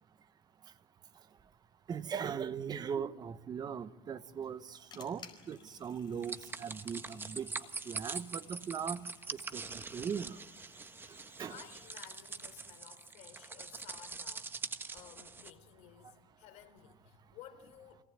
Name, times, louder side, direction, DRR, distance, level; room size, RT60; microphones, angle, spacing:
voice 1, 1.9-7.5 7.9-10.4 11.4-11.6, right 7 dB, 35° right, 13 dB, 1.1 m, -39 dB
sound 1, 4.4-12.8, left 6 dB, 35° left, 4.9 m, -59 dB
sound 2, 6.2-15.5, right 4 dB, 15° right, 1.4 m, -44 dB
voice 2, 11.5-18.0, left 10 dB, 65° left, 9 dB, 3.6 m, -55 dB
27.5 x 18.0 x 8.9 m, 1.2 s
supercardioid pair, 115°, 12 cm